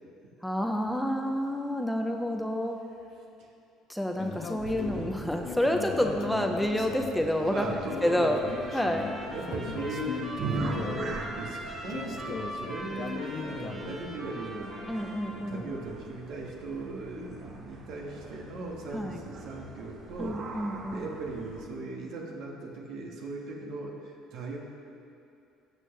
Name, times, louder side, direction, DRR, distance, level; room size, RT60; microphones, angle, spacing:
voice 1, 0.4-2.8 3.9-7.7 8.0-8.4 8.7-9.0 14.9-15.7 18.9-19.2 20.2-21.0, equal, 5° left, 3 dB, 0.7 m, -29 dB
Invest Into Gold Spam Ad, 4.2-14.1, left 6 dB, 50° left, 0.7 m, -39 dB
sound 1, 4.6-21.7, right 4 dB, 55° right, 1.3 m, -42 dB
voice 2, 7.5-8.4 9.1-24.6, right 2 dB, 70° right, -1 dB, 1.7 m, -38 dB
Trumpet, 7.8-15.4, right 1 dB, 30° right, 2.0 m, -42 dB
16.5 x 6.1 x 3.4 m, 2.6 s
supercardioid pair, 85°, 0 cm